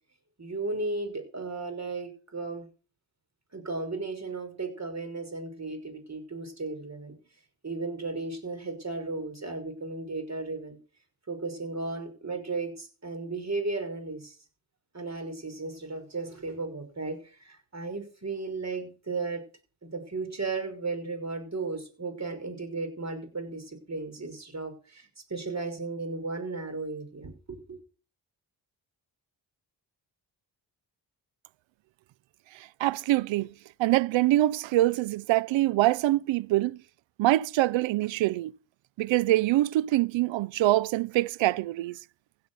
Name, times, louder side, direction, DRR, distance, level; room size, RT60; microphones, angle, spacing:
voice 1, 0.4-2.7 3.5-7.2 7.6-10.8 11.3-14.4 14.9-19.4 19.8-27.8, right 3 dB, 35° right, 5.7 m, -35 dB
voice 2, 32.8-33.5 33.8-36.8 37.2-38.5 39.0-42.0, right 16 dB, 90° right, 0.6 m, -24 dB
16.0 x 8.0 x 6.9 m
cardioid pair, 60°, 44 cm